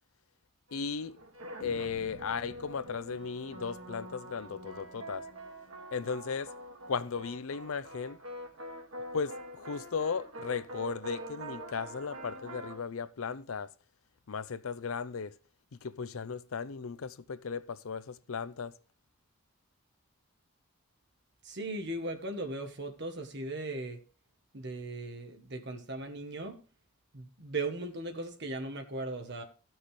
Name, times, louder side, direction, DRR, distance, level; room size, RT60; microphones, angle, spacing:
voice 1, 0.7-1.2 1.6-5.2 5.9-6.5 6.9-8.2 9.1-13.7 14.3-15.3 15.7-18.8, left 5 dB, 70° left, 0.5 m, -36 dB
sound 1, 0.7-12.8, right 1 dB, 70° right, 1.8 m, -45 dB
voice 2, 21.4-24.0 24.5-26.6 27.1-29.4, right 2 dB, 50° right, 1.3 m, -38 dB
17.0 x 6.1 x 3.2 m
head